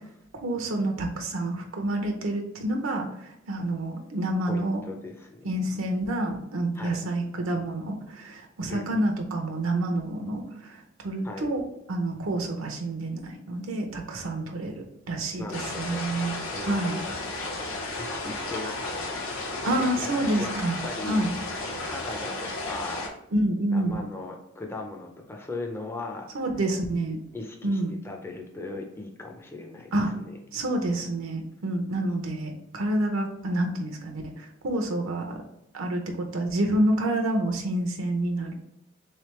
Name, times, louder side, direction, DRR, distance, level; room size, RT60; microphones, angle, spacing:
voice 1, 0.4-4.8 5.4-11.6 11.9-14.7 15.1-17.0 19.6-21.3 23.3-24.0 26.3-27.2 27.6-27.9 29.9-30.1 30.5-35.4 35.7-36.0 36.3-38.5, right 1 dB, 75° right, 2 dB, 0.6 m, -28 dB
voice 2, 4.5-5.5 6.7-7.0 8.7-9.1 11.2-11.5 15.4-16.0 16.5-17.2 17.6-20.1 20.4-20.5 20.8-21.2 21.8-23.1 23.7-26.3 27.3-30.4, left 2 dB, 10° left, 1 dB, 0.4 m, -38 dB
sound 1, 15.5-23.1, left 2 dB, 85° left, 0.9 m, -33 dB
3.5 x 3.3 x 3.0 m, 0.81 s
head